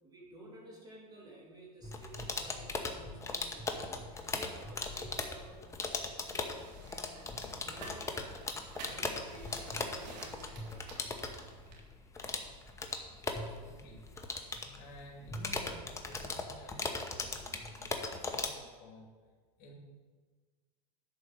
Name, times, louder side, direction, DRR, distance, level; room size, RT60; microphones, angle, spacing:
voice 1, 0.0-7.0 7.6-8.1 8.8-11.5 13.6-13.7, right 1 dB, 20° right, -3 dB, 2.9 m, -54 dB
sound 1, 1.8-18.5, left 3 dB, 15° left, 0.9 m, -39 dB
sound 2, 6.5-11.8, right 3 dB, 85° right, 2.1 m, -51 dB
voice 2, 13.3-14.0 14.7-19.1 19.6-19.7, equal, 55° left, -1 dB, 2.7 m, -53 dB
11.0 x 4.4 x 6.8 m, 1.4 s
supercardioid pair, 125°, 21 cm